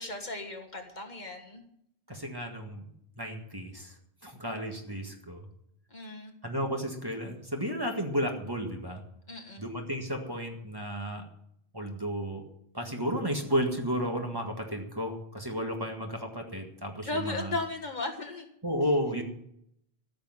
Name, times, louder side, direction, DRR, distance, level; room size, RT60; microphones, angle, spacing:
voice 1, 0.0-1.6 5.9-6.3 9.3-9.6 17.0-18.5, left 2 dB, 45° left, 3 dB, 1.7 m, -36 dB
voice 2, 2.1-2.9 3.2-3.9 4.2-5.4 6.4-9.0 9.6-11.2 11.7-12.4 12.7-17.6 18.6-19.2, equal, 20° right, 2 dB, 1.9 m, -33 dB
14.5 x 6.7 x 9.6 m, 0.73 s
omnidirectional pair, 1.0 m